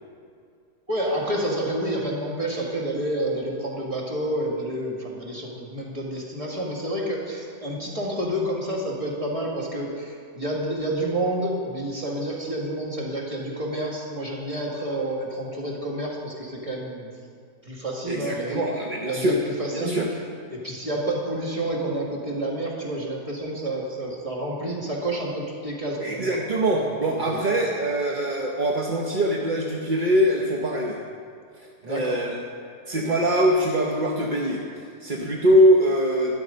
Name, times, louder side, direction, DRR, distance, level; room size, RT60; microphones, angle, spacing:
voice 1, 0.9-17.1 17.6-18.6 19.0-20.2 20.5-26.4 26.8-27.4 31.8-32.2, right 1 dB, 20° right, -3 dB, 2.1 m, -29 dB
voice 2, 18.1-19.4 19.7-20.1 26.0-31.0 31.8-32.4 32.9-36.4, equal, 40° right, -1 dB, 0.8 m, -23 dB
12.5 x 11.0 x 5.2 m, 2.3 s
omnidirectional pair, 1.8 m